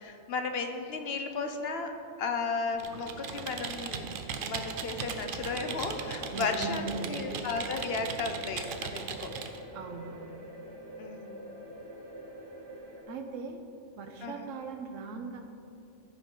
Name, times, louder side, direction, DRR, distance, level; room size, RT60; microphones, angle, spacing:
voice 1, 0.0-4.1 4.4-9.3 11.0-11.5 14.2-14.5, left 4 dB, 55° left, 6 dB, 0.9 m, -34 dB
Computer keyboard, 2.7-9.6, right 5 dB, 55° right, 0.6 m, -38 dB
sound 1, 2.9-13.0, equal, 20° right, 1.2 m, -48 dB
voice 2, 6.3-7.2 9.7-10.3 13.1-13.6 14.0-15.4, right 4 dB, 75° right, 5 dB, 1.2 m, -39 dB
14.5 x 5.4 x 3.8 m, 2.7 s
omnidirectional pair, 1.3 m